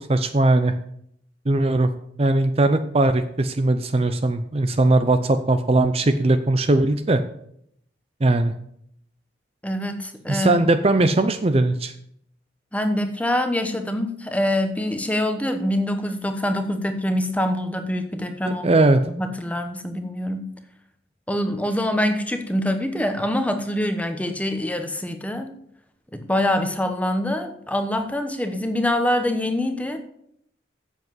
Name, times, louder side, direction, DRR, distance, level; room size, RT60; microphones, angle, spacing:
voice 1, 0.1-0.7 1.5-1.9 2.2-7.2 8.2-8.5 10.3-11.9 18.6-19.0, right 2 dB, 30° right, 9 dB, 0.5 m, -19 dB
voice 2, 9.6-10.6 12.7-18.8 19.0-20.5 21.3-25.5 26.1-30.0, left 1 dB, 10° left, 7 dB, 1.0 m, -25 dB
8.1 x 7.2 x 7.8 m, 0.71 s
head